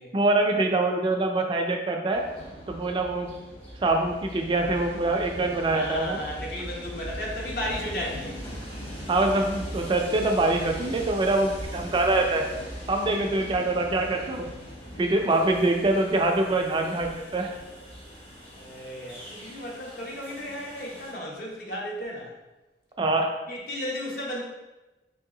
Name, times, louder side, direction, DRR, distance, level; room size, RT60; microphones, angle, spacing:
voice 1, 0.1-2.2 2.7-3.3 3.8-6.2 9.1-12.4 12.9-14.5 15.0-17.5 23.0-23.2, right 2 dB, 30° right, 3 dB, 0.3 m, -24 dB
Train, 2.1-21.1, equal, 35° left, 1.0 m, -40 dB
voice 2, 5.7-8.4 18.5-22.3 23.5-24.4, equal, 55° left, -3 dB, 0.9 m, -34 dB
3.0 x 2.7 x 3.7 m, 1.1 s
head